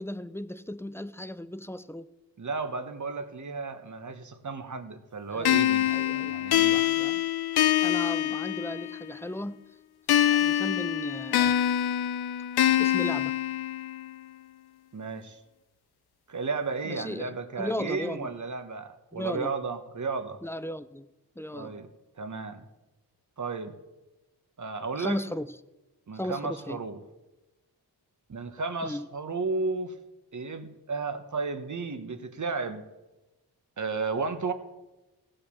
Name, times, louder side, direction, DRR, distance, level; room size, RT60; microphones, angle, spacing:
voice 1, 0.0-2.1 5.3-5.6 5.9-6.4 6.7-7.2 7.8-9.6 10.3-11.6 12.8-13.4 16.8-18.3 19.1-19.5 20.4-21.1 21.4-21.7 24.9-25.5 26.1-26.8 28.8-29.1, left 1 dB, 5° left, 14 dB, 0.5 m, -36 dB
voice 2, 2.4-5.8 6.2-6.8 14.9-15.4 16.3-20.4 21.5-21.9 22.2-22.7 23.4-23.7 24.6-25.2 26.1-27.0 28.3-29.9 30.3-32.8 33.8-34.5, right 4 dB, 45° right, 8 dB, 1.3 m, -33 dB
sound 1, 5.4-9.1 10.1-14.1, left 11 dB, 70° left, 0.6 m, -25 dB
15.5 x 5.6 x 6.9 m, 1.0 s
cardioid pair, 55°, 41 cm